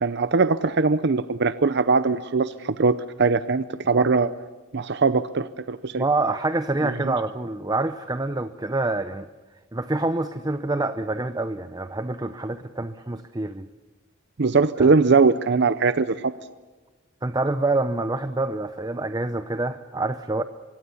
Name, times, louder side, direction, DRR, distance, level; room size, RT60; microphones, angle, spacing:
voice 1, 0.0-4.3 4.7-6.1 6.8-7.2 14.4-16.3, right 4 dB, 55° right, 13 dB, 0.7 m, -21 dB
voice 2, 5.9-9.3 9.7-13.7 14.8-14.9 17.2-20.4, right 2 dB, 20° right, 10 dB, 0.7 m, -26 dB
24.5 x 23.5 x 7.1 m, 1.3 s
head